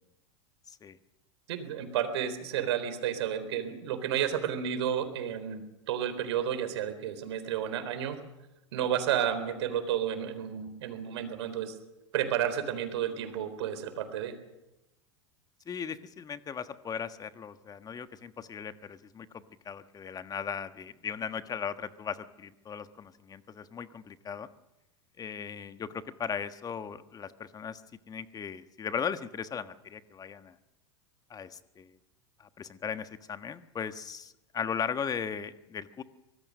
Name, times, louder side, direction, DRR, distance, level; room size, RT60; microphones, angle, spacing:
voice 1, 1.5-8.2 8.7-11.8 12.1-14.4, right 9 dB, 70° right, 9 dB, 4.0 m, -31 dB
voice 2, 15.7-24.5 25.2-27.8 28.1-30.5 31.3-31.9 32.4-36.0, left 7 dB, 25° left, 11 dB, 1.4 m, -37 dB
24.5 x 19.5 x 6.6 m, 0.94 s
hypercardioid pair, 90°, 15 cm